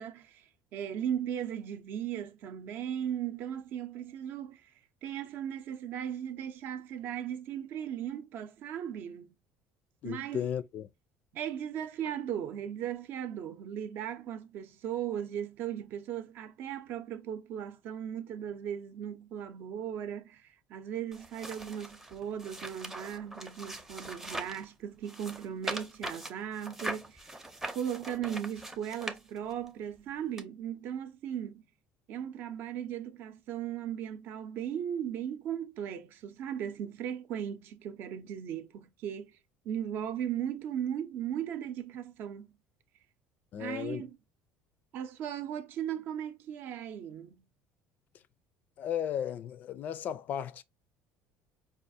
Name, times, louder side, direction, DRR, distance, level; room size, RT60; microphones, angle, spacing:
voice 1, 0.0-4.7 5.0-9.3 10.0-10.5 11.3-27.3 27.7-31.6 32.1-39.3 39.6-42.6 43.6-44.2 44.9-47.4, right 9 dB, 55° right, 0.6 m, -37 dB
voice 2, 10.0-10.9 43.5-44.1 48.8-50.6, left 9 dB, 45° left, 0.4 m, -35 dB
sound 1, 21.1-24.6 25.0-29.7 30.4-30.5, right 1 dB, 10° right, 0.6 m, -41 dB
4.9 x 2.4 x 2.6 m
cardioid pair, 145°, 4 cm